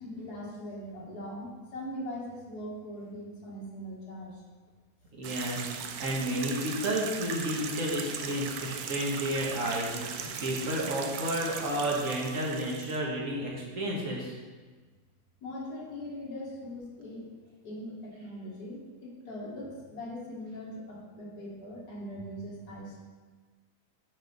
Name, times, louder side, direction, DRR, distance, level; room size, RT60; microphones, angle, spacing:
voice 1, 0.0-4.4 15.4-17.3 17.6-23.0, equal, 85° left, -4 dB, 2.2 m, -41 dB
voice 2, 5.1-5.7 6.0-14.3, right 1 dB, 55° right, -2 dB, 1.6 m, -31 dB
sound 1, 5.2-13.0, right 6 dB, 75° right, 1.1 m, -38 dB
8.2 x 5.0 x 4.0 m, 1.4 s
omnidirectional pair, 1.7 m